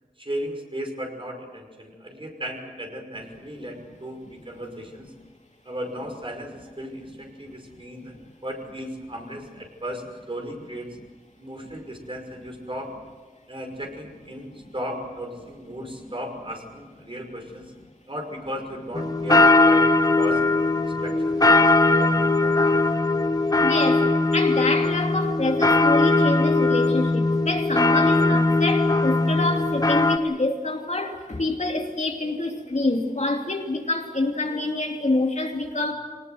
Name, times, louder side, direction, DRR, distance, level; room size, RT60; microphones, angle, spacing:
voice 1, 0.2-5.1 5.6-10.9 11.4-13.0 13.5-17.7 18.1-19.8 20.2-20.5 20.8-22.6, equal, 35° right, 2 dB, 5.7 m, -36 dB
sound 1, 18.9-30.2, left 2 dB, 25° left, 1.3 m, -20 dB
voice 2, 23.6-24.1 24.3-35.9, left 2 dB, 50° left, 2 dB, 2.9 m, -26 dB
24.5 x 19.0 x 8.0 m, 1.4 s
wide cardioid pair, 70°, 15 cm